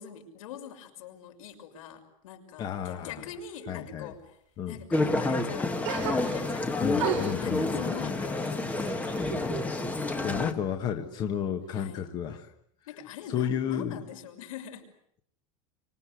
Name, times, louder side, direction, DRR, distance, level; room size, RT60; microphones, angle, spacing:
voice 1, 0.0-4.4 4.7-6.9 7.3-9.2 11.7-12.1 12.9-14.9, left 8 dB, 80° left, 4 dB, 6.3 m, -44 dB
voice 2, 2.6-3.1 3.7-4.1 4.6-4.8 6.8-8.1 10.2-12.5 13.3-14.0, left 8 dB, 25° left, 6 dB, 1.4 m, -32 dB
sound 1, 4.9-10.5, left 2 dB, 10° left, 1.4 m, -29 dB
sound 2, 5.8-6.6 7.0-9.7 10.0-10.9, right 8 dB, 50° right, 6.7 m, -36 dB
28.5 x 25.5 x 8.4 m, 0.68 s
supercardioid pair, 175°, 17 cm